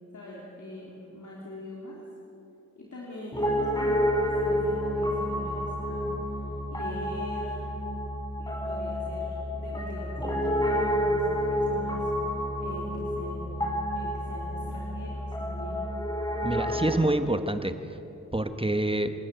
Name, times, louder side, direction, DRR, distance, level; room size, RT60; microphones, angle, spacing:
voice 1, 0.1-2.0 2.7-7.7 8.4-13.5 13.9-15.9, left 1 dB, 80° left, -4 dB, 3.4 m, -43 dB
Piano, 3.3-17.0, equal, 15° left, 4.7 m, -29 dB
voice 2, 16.4-17.7 18.3-19.1, right 1 dB, 20° right, 9 dB, 1.2 m, -26 dB
27.0 x 13.0 x 9.2 m, 2.9 s
wide cardioid pair, 60°, 30 cm